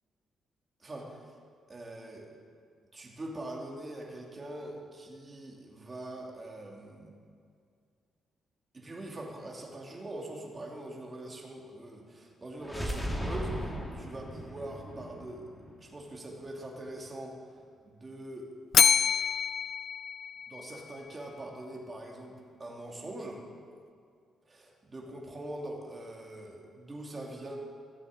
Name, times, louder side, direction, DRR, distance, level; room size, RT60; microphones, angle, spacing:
voice 1, 0.8-1.3 1.7-2.3 2.9-7.1 8.7-15.4 15.8-17.4 17.8-18.5 20.5-23.4 24.5-27.6, right 1 dB, 25° right, -1 dB, 2.8 m, -43 dB
sound 1, 12.6-16.5, equal, 5° left, 2.1 m, -37 dB
Bell, 18.7-21.0, left 7 dB, 60° left, 0.4 m, -26 dB
14.5 x 9.0 x 7.9 m, 2.2 s
cardioid pair, 95°, 0 cm